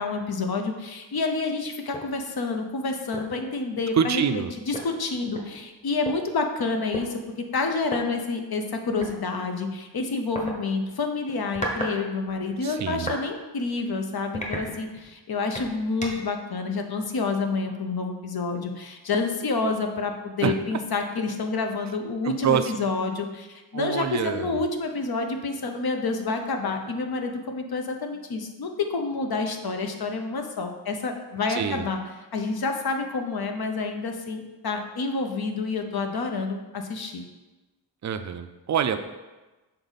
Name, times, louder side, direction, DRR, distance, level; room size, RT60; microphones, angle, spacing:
voice 1, 0.0-7.2 7.5-32.0 32.3-37.2, left 3 dB, 55° left, 5 dB, 0.9 m, -28 dB
sound 1, 1.9-2.1 2.6-2.7 3.1-3.4 4.4-4.5 4.7-6.1 6.9-7.1 7.8-8.0 9.0-9.2 10.3-10.5 11.3-12.0 12.3-13.2 13.7-13.8 14.3-15.1 15.5-16.3, equal, 15° left, 1.1 m, -34 dB
voice 2, 3.9-4.5 12.6-13.1 20.4-20.5 22.2-22.7 23.7-24.6 31.5-31.9 38.0-39.0, right 7 dB, 40° right, 9 dB, 0.5 m, -26 dB
6.8 x 4.0 x 4.0 m, 1.1 s
wide cardioid pair, 90°, 45 cm